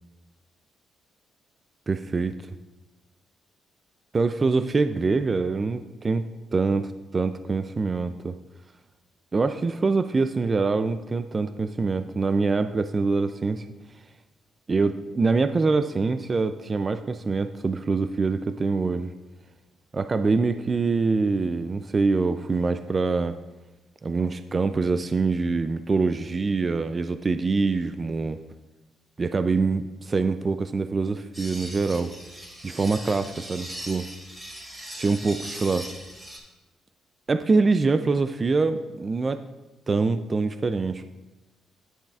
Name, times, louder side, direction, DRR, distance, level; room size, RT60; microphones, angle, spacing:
voice 1, 1.9-2.6 4.1-8.3 9.3-13.7 14.7-19.1 19.9-23.3 24.0-28.4 29.2-32.1 32.6-34.1 34.9-35.9 37.3-39.4 39.9-41.0, right 4 dB, 30° right, 10 dB, 0.3 m, -24 dB
sound 1, 31.3-36.4, right 1 dB, 15° right, 2.6 m, -40 dB
10.0 x 8.6 x 2.4 m, 1.1 s
cardioid pair, 90°, 0 cm